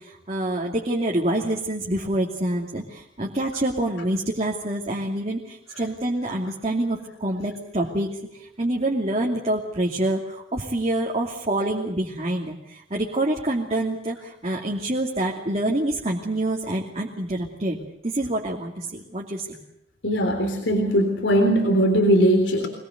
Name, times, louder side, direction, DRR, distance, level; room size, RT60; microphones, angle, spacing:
voice 1, 0.0-8.1 8.4-17.8 18.0-19.5, right 1 dB, 35° right, -1 dB, 2.7 m, -26 dB
voice 2, 20.0-22.7, equal, 80° left, 4 dB, 3.7 m, -20 dB
24.5 x 20.5 x 8.0 m, 0.79 s
head